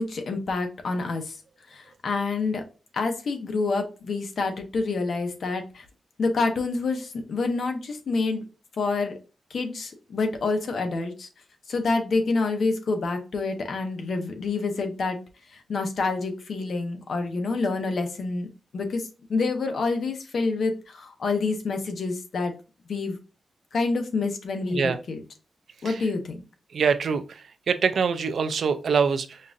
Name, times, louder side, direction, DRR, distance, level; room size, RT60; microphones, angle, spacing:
voice 1, 0.0-1.4 1.7-2.6 2.9-5.8 6.2-8.4 8.8-9.1 9.5-11.3 11.7-15.2 15.5-18.5 18.7-22.5 22.9-23.2 23.7-25.2 25.8-26.4, left 3 dB, 65° left, 5 dB, 0.7 m, -27 dB
voice 2, 26.7-29.4, right 6 dB, 65° right, 10 dB, 0.4 m, -24 dB
5.2 x 2.4 x 2.5 m, 0.34 s
wide cardioid pair, 155°, 0 cm